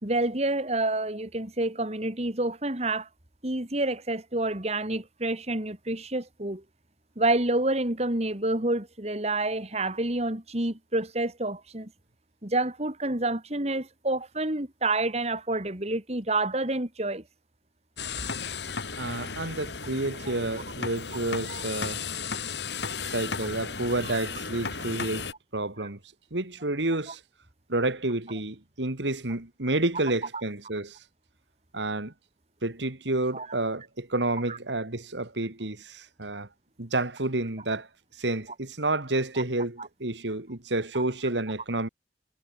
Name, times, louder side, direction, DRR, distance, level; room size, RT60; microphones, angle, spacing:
voice 1, 0.0-3.1 3.4-6.6 7.2-11.9 12.4-17.2 21.5-21.6 24.0-24.2 33.3-33.5 34.5-34.6 39.8-39.9 40.9-41.0, right 2 dB, 35° right, 2.9 m, -28 dB
sound 1, 18.0-25.3, left 5 dB, 75° left, 2.7 m, -35 dB
voice 2, 19.0-22.1 23.1-25.3 25.5-26.0 26.3-27.2 27.7-31.0 31.7-32.1 32.6-36.5 36.8-37.9 38.2-41.9, right 2 dB, 85° right, 2.8 m, -30 dB
head